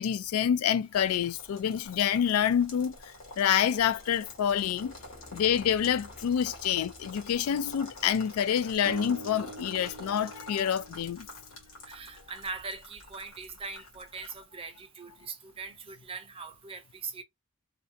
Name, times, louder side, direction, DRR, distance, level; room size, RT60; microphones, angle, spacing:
voice 1, 0.0-2.9 3.4-4.9 5.3-11.3, left 9 dB, 90° left, 0.3 m, -27 dB
sound 1, 0.9-14.4, left 2 dB, 70° left, 1.2 m, -48 dB
sound 2, 4.1-8.7, left 2 dB, 40° left, 0.6 m, -55 dB
sound 3, 8.9-12.0, right 2 dB, 75° right, 0.5 m, -45 dB
voice 2, 11.9-17.2, right 4 dB, 25° right, 0.5 m, -41 dB
2.5 x 2.1 x 2.5 m
head